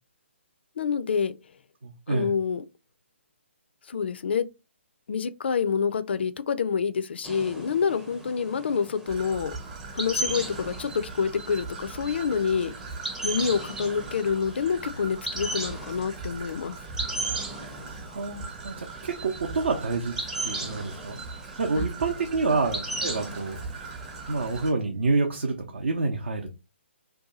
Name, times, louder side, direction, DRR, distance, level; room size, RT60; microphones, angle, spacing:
voice 1, 0.8-1.3 2.1-2.6 3.9-4.5 5.1-9.5 9.9-12.7 13.2-16.8 21.8-21.9 22.4-22.6, left 6 dB, 55° left, 0.4 m, -27 dB
voice 2, 1.8-2.3 17.7-20.2 20.4-21.2 21.6-23.6 24.3-26.5, right 3 dB, 65° right, 0.6 m, -28 dB
sound 1, 7.2-24.7, right 2 dB, 5° right, 0.5 m, -37 dB
Traffic noise roadway noise / Trickle dribble, 9.1-24.7, right 4 dB, 30° right, 0.9 m, -40 dB
2.7 x 2.3 x 3.9 m
figure-of-eight pair, 135°, 7 cm